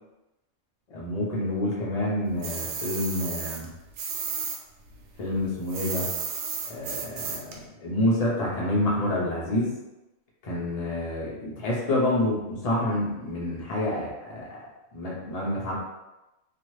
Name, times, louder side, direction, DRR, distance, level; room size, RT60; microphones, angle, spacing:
voice 1, 0.9-3.7 5.2-6.1 6.7-9.8 10.4-14.5 14.9-15.7, left 1 dB, 35° left, -5 dB, 0.8 m, -28 dB
sound 1, 2.4-4.6 4.9-7.6, right 5 dB, 90° right, 1.0 m, -33 dB
2.9 x 2.4 x 3.1 m, 0.98 s
omnidirectional pair, 1.3 m